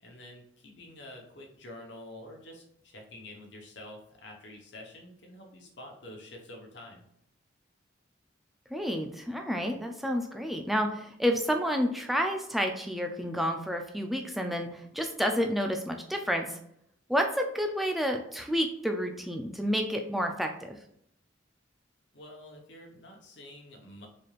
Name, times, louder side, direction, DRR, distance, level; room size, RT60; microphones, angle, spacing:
voice 1, 0.0-7.0 22.1-24.1, left 1 dB, 65° left, 1 dB, 0.9 m, -48 dB
voice 2, 8.7-16.6 17.1-20.8, equal, ahead, 3 dB, 0.3 m, -30 dB
4.2 x 3.2 x 2.4 m, 0.72 s
head